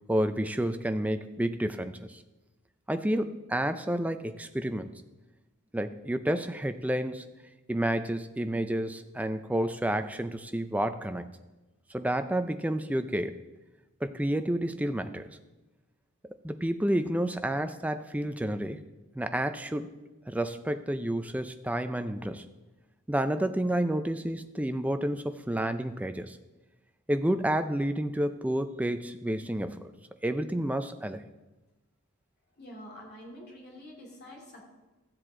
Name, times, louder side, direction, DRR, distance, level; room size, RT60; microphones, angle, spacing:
voice 1, 0.1-2.2 2.9-4.9 5.7-7.2 7.7-11.3 11.9-13.4 14.0-15.3 16.4-18.8 19.2-19.9 20.3-22.4 23.1-26.4 27.1-29.8 30.2-31.2, right 1 dB, 5° right, 9 dB, 0.4 m, -30 dB
voice 2, 32.6-34.6, equal, 45° left, -2 dB, 2.8 m, -47 dB
14.0 x 7.6 x 3.7 m, 1.1 s
head